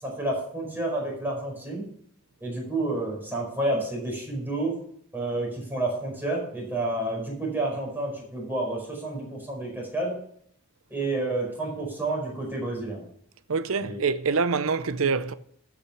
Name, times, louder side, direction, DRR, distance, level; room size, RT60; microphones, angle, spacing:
voice 1, 0.0-1.8 2.4-4.7 5.1-10.2 10.9-13.0 13.8-14.0, right 2 dB, 10° right, 4.8 m, -30 dB
voice 2, 13.5-15.3, right 5 dB, 70° right, 0.7 m, -25 dB
13.5 x 6.0 x 5.9 m
head